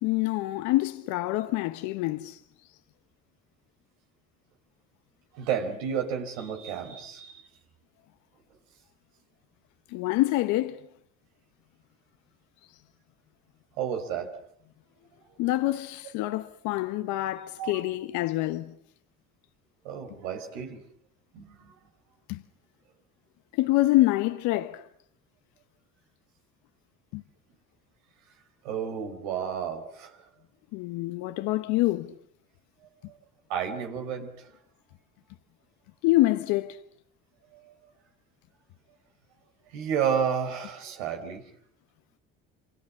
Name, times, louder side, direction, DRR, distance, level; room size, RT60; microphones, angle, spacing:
voice 1, 0.0-2.4 9.9-10.8 15.4-18.7 22.3-22.4 23.6-24.8 27.1-27.2 30.7-32.1 36.0-36.7, left 17 dB, 75° left, 1.1 m, -26 dB
voice 2, 5.3-7.4 13.8-14.3 15.0-15.1 17.6-17.9 19.8-20.8 21.3-21.7 28.6-30.2 33.1-33.2 33.5-34.5 37.5-37.7 39.7-41.4, right 7 dB, 90° right, 4.2 m, -31 dB
27.5 x 24.5 x 7.3 m
supercardioid pair, 75°, 30 cm